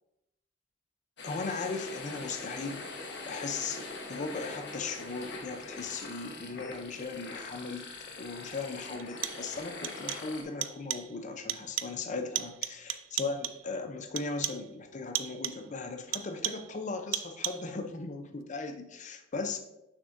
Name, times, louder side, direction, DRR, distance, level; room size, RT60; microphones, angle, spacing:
sound 1, 1.2-10.4, left 3 dB, 65° left, 1.0 m, -43 dB
voice 1, 1.2-2.8 3.3-7.9 8.2-19.6, left 4 dB, 40° left, 6 dB, 0.6 m, -37 dB
sound 2, 7.9-8.0 9.0-9.6 9.8-10.4 10.6-11.2 11.5-12.1 12.3-13.7 14.2-14.7 15.1-15.7 16.1-16.8 17.1-17.8, right 13 dB, 85° right, 0.4 m, -36 dB
6.2 x 6.1 x 2.6 m, 0.89 s
head